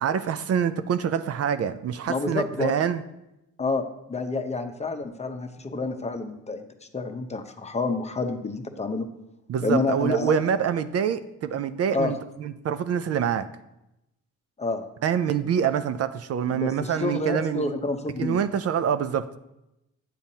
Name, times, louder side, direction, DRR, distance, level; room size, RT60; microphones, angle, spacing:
voice 1, 0.0-3.0 9.5-13.5 15.0-17.7 18.2-19.3, right 8 dB, 55° right, 11 dB, 0.5 m, -26 dB
voice 2, 2.1-2.7 3.6-9.1 9.6-10.4 11.9-12.1 14.6-14.8 16.5-18.4, left 3 dB, 20° left, 6 dB, 0.8 m, -29 dB
9.1 x 7.1 x 2.8 m, 0.88 s
cardioid pair, 90°, 30 cm